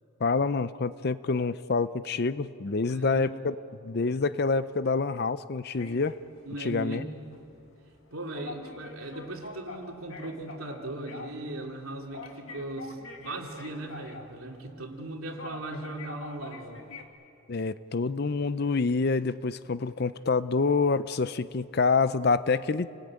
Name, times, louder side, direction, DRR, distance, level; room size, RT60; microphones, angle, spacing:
voice 1, 0.2-3.5 3.8-6.2 6.6-7.0 17.5-22.9, left 4 dB, 45° left, 14 dB, 0.5 m, -27 dB
voice 2, 2.9-3.3 6.4-7.2 8.1-16.8, right 2 dB, 75° right, 1 dB, 3.0 m, -38 dB
sound 1, 5.8-17.0, left 3 dB, 65° left, 2.2 m, -45 dB
29.0 x 19.5 x 8.9 m, 2.7 s
head